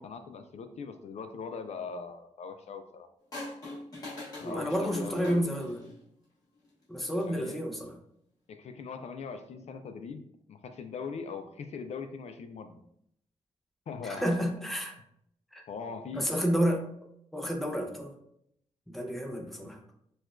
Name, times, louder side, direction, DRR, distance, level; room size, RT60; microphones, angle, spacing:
voice 1, 0.0-3.1 4.4-5.6 7.2-7.6 8.5-12.8 13.9-14.4 15.7-16.5, left 5 dB, 60° left, 7 dB, 0.4 m, -41 dB
sound 1, 3.3-6.0 7.0-7.4, left 2 dB, 30° left, 1.3 m, -42 dB
voice 2, 4.4-5.8 6.9-8.0 14.0-15.0 15.5-15.6 16.1-16.9 17.3-18.1 18.9-19.8, equal, ahead, 1 dB, 0.5 m, -30 dB
6.2 x 2.3 x 2.4 m, 0.73 s
wide cardioid pair, 170°, 13 cm